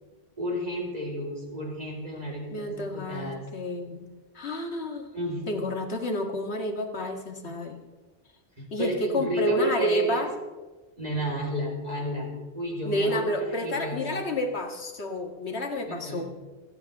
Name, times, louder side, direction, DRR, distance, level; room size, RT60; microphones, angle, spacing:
voice 1, 0.4-3.4 5.1-5.5 8.6-10.3 11.0-12.3 12.5-14.2 15.9-16.3, equal, 40° right, -3 dB, 4.6 m, -32 dB
voice 2, 2.5-4.0 4.3-5.1 5.5-7.8 8.7-10.3 12.8-16.3, equal, 85° left, 3 dB, 2.1 m, -29 dB
28.5 x 10.0 x 3.6 m, 1.2 s
omnidirectional pair, 1.1 m